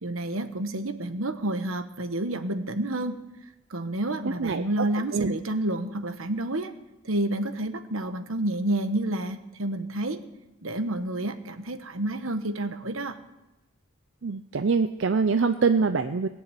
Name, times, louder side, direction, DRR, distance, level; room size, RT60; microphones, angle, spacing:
voice 1, 0.0-3.2 3.7-6.7 7.0-10.2 10.6-13.2, right 1 dB, 80° right, 9 dB, 1.2 m, -29 dB
voice 2, 14.2-16.3, right 4 dB, 60° right, 9 dB, 0.5 m, -24 dB
18.5 x 7.1 x 9.2 m, 1.0 s
head